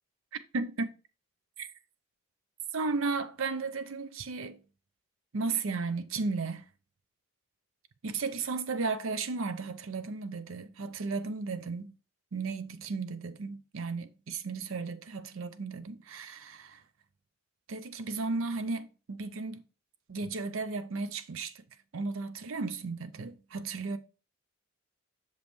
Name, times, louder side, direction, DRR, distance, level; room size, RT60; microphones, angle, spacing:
voice 1, 0.5-0.9 1.6-1.7 2.7-4.6 5.3-6.6 8.0-11.9 12.3-16.8 17.7-19.6 20.1-21.5 21.9-24.0, right 4 dB, 70° right, 0.6 m, -34 dB
6.5 x 5.2 x 3.1 m
head